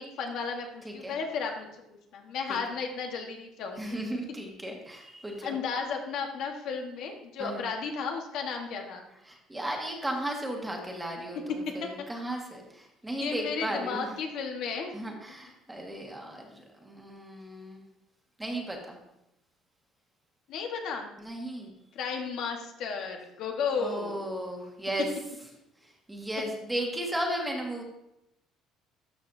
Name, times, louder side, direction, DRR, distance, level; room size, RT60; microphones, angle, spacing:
voice 1, 0.0-1.7 2.1-4.0 5.4-9.1 11.8-11.9 13.2-15.1 20.5-21.1 21.9-24.3, left 5 dB, 65° left, 3 dB, 1.2 m, -34 dB
voice 2, 0.8-1.2 2.5-2.6 3.8-5.6 7.4-7.6 9.2-14.1 14.9-17.8 18.4-19.0 21.2-21.7 23.8-25.1 25.8-27.8, right 1 dB, 10° right, 1 dB, 1.5 m, -35 dB
12.5 x 5.6 x 2.6 m, 0.86 s
cardioid pair, 125°, 0 cm